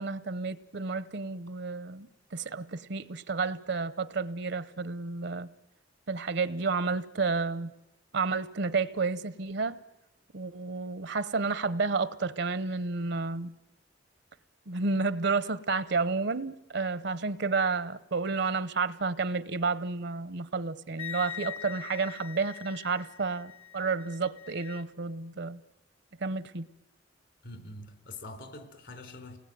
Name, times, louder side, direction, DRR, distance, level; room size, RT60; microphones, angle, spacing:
voice 1, 0.0-5.5 6.1-7.7 8.1-9.8 10.3-13.5 14.7-25.6 26.2-26.7, right 4 dB, 65° right, 0.8 m, -31 dB
Wind instrument woodwind instrument, 21.0-24.8, left 10 dB, 35° left, 0.9 m, -43 dB
voice 2, 27.4-29.4, left 2 dB, 65° left, 3.7 m, -44 dB
29.0 x 20.0 x 9.2 m
head